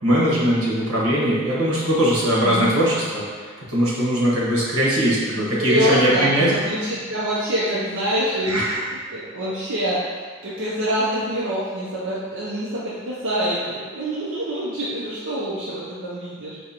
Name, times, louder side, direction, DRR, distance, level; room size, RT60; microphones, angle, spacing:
voice 1, 0.0-6.5 6.8-6.9 8.4-8.8, equal, 90° right, -6 dB, 1.3 m, -20 dB
voice 2, 2.4-2.7 5.3-8.8 9.1-16.6, equal, 65° right, -7 dB, 0.6 m, -26 dB
4.8 x 3.1 x 2.9 m, 1.5 s
head